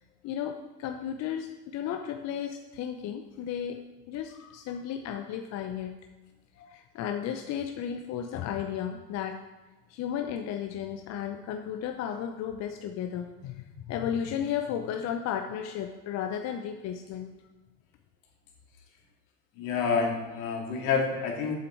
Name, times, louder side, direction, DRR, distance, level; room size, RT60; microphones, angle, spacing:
voice 1, 0.2-3.8 4.1-6.0 6.6-9.4 9.9-17.3, left 9 dB, 35° left, 5 dB, 0.7 m, -34 dB
voice 2, 19.6-21.6, left 5 dB, 60° left, 1 dB, 2.5 m, -28 dB
8.1 x 6.8 x 4.6 m, 1.2 s
hypercardioid pair, 95°, 47 cm